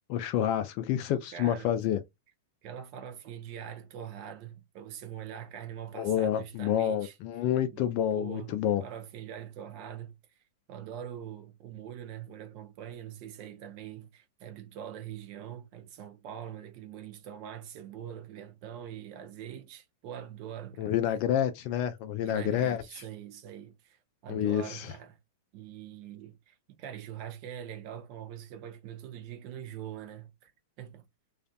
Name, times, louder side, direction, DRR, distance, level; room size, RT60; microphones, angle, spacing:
voice 1, 0.1-2.0 5.9-8.8 20.8-23.0 24.3-24.9, left 10 dB, 45° left, 0.3 m, -28 dB
voice 2, 1.3-1.7 2.6-7.2 7.7-7.8 8.1-8.5 8.8-10.2 10.7-20.9 22.2-25.2 25.5-30.5 30.8-31.0, right 10 dB, 45° right, 0.5 m, -43 dB
2.4 x 2.4 x 2.2 m
hypercardioid pair, 100°, 0 cm